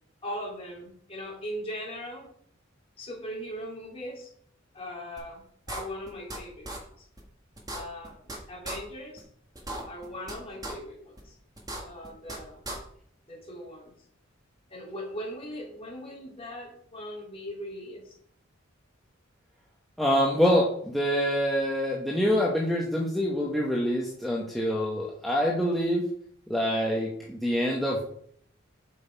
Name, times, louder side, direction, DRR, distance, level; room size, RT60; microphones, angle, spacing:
voice 1, 0.2-2.3 3.0-4.3 4.7-7.1 7.7-9.3 9.8-11.3 11.8-12.6 13.3-13.9 14.7-18.2, equal, 30° left, -2 dB, 3.0 m, -39 dB
sound 1, 5.2-5.3 5.7-6.4 6.6-6.8 7.2-7.3 7.6-8.4 8.6-8.8 9.2-9.3 9.6-10.3 10.6-10.7 11.2-11.3 11.6-12.4 12.6-12.8, right 1 dB, 20° right, 1.6 m, -36 dB
voice 2, 20.0-26.1 26.5-28.0, equal, ahead, -4 dB, 1.0 m, -26 dB
7.5 x 6.3 x 4.6 m, 0.63 s
head